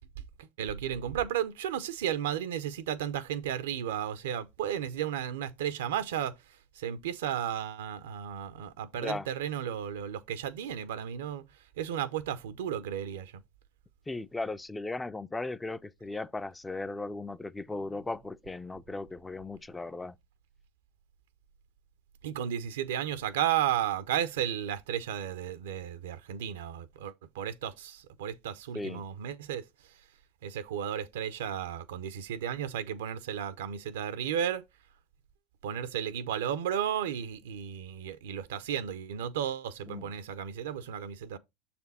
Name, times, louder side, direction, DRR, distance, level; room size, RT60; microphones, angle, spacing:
voice 1, 0.4-6.3 6.7-11.4 11.8-13.3 22.2-29.6 30.4-34.6 35.6-41.4, right 10 dB, 85° right, 0.6 m, -33 dB
voice 2, 14.1-20.2 28.7-29.0 39.9-40.1, left 2 dB, 10° left, 0.4 m, -37 dB
6.8 x 4.3 x 4.1 m
hypercardioid pair, 100°, 0 cm